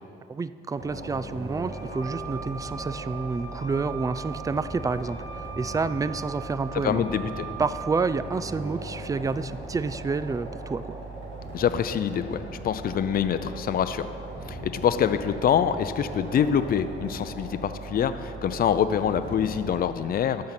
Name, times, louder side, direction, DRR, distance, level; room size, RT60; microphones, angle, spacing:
voice 1, 0.3-7.0 7.6-11.0, right 4 dB, 15° right, 15 dB, 0.3 m, -29 dB
sound 1, 0.8-19.9, right 2 dB, 65° right, 2.5 m, -38 dB
Wind instrument woodwind instrument, 1.7-8.5, right 7 dB, 85° right, 2.5 m, -41 dB
voice 2, 6.8-7.5 11.5-14.1 14.5-20.5, left 8 dB, 50° left, 10 dB, 0.5 m, -25 dB
13.0 x 6.5 x 5.9 m, 2.4 s
cardioid pair, 90°, 20 cm